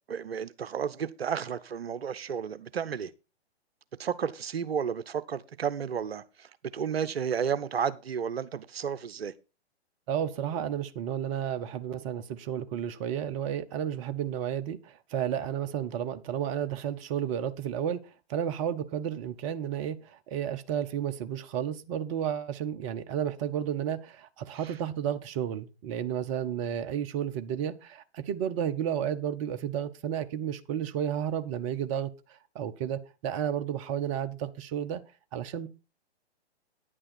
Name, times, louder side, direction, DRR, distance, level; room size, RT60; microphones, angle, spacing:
voice 1, 0.1-3.1 4.0-6.5 6.7-9.3 24.6-24.7, right 7 dB, 65° right, 0.7 m, -32 dB
voice 2, 10.1-18.0 18.3-35.0 35.3-35.7, right 9 dB, 30° right, 0.7 m, -32 dB
10.0 x 8.7 x 4.4 m
figure-of-eight pair, 120°, 33 cm